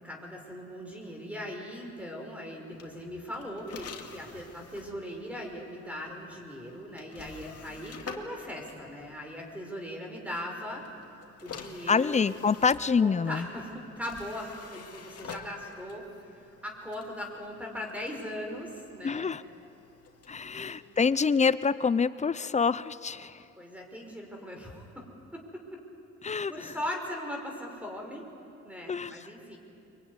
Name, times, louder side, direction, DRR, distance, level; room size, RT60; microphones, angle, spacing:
voice 1, 0.0-10.9 11.4-12.2 13.0-16.1 16.3-19.3 20.5-20.8 23.6-25.1 25.3-25.8 26.2-28.3 28.6-29.6, left 1 dB, 5° right, 1 dB, 5.1 m, -39 dB
sound 1, 2.7-9.6 10.7-21.2, left 6 dB, 50° left, 2.3 m, -49 dB
voice 2, 11.9-13.5 19.0-19.4 20.3-23.4 26.2-26.7 28.9-29.1, left 5 dB, 25° left, 16 dB, 0.7 m, -26 dB
23.5 x 23.0 x 9.7 m, 2.7 s
cardioid pair, 90°, 30 cm